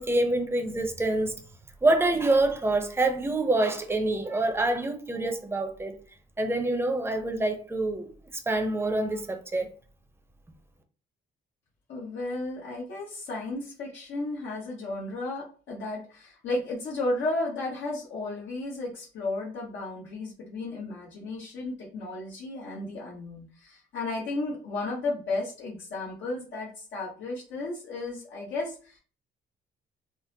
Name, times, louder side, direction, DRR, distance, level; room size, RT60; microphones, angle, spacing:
voice 1, 0.0-1.3 1.8-5.9 6.4-8.1 8.5-9.7, right 2 dB, 10° right, 0.6 m, -26 dB
voice 2, 11.9-29.0, left 2 dB, 75° left, 1.0 m, -34 dB
3.7 x 2.0 x 2.7 m
cardioid pair, 90°, 20 cm